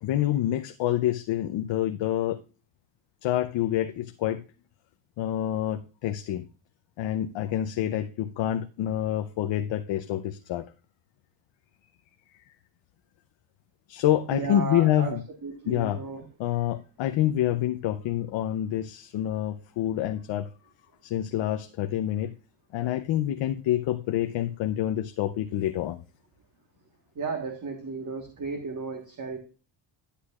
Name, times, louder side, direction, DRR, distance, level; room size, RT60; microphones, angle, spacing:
voice 1, 0.0-2.4 3.2-4.4 5.2-6.5 7.0-10.7 13.9-15.2 15.7-16.0 16.4-20.5 21.0-22.3 22.7-26.0, left 12 dB, 65° left, 0.7 m, -27 dB
voice 2, 14.3-16.2 27.1-29.4, right 4 dB, 40° right, 1.5 m, -34 dB
11.5 x 8.4 x 2.4 m
cardioid pair, 130°, 48 cm